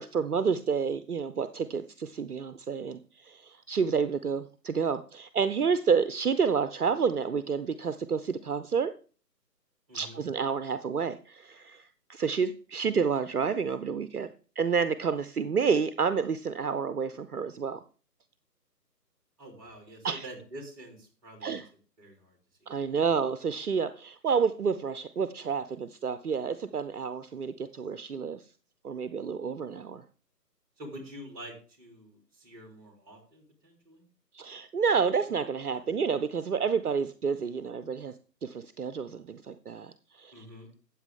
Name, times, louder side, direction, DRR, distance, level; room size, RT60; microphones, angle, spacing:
voice 1, 0.0-8.9 9.9-14.3 14.6-17.8 20.0-20.2 21.4-21.7 22.7-28.4 28.8-30.0 34.3-38.1 38.4-40.4, right 6 dB, 65° right, 13 dB, 0.7 m, -29 dB
voice 2, 9.9-10.2 19.4-21.6 22.0-22.7 30.8-34.1 40.3-40.7, right 1 dB, 20° right, 2 dB, 3.3 m, -47 dB
13.0 x 8.3 x 3.6 m, 0.38 s
figure-of-eight pair, 145°, 49 cm